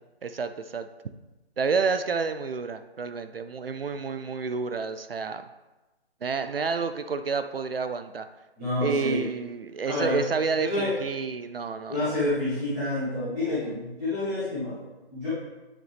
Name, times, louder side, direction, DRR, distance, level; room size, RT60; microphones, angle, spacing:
voice 1, 0.2-0.9 1.6-5.5 6.2-8.3 8.8-12.0, right 5 dB, 65° right, 10 dB, 0.6 m, -29 dB
voice 2, 8.6-9.3 9.8-10.2 10.7-10.9 11.9-15.3, left 2 dB, 5° right, -14 dB, 0.9 m, -28 dB
9.7 x 6.4 x 3.4 m, 1.1 s
hypercardioid pair, 175°, 31 cm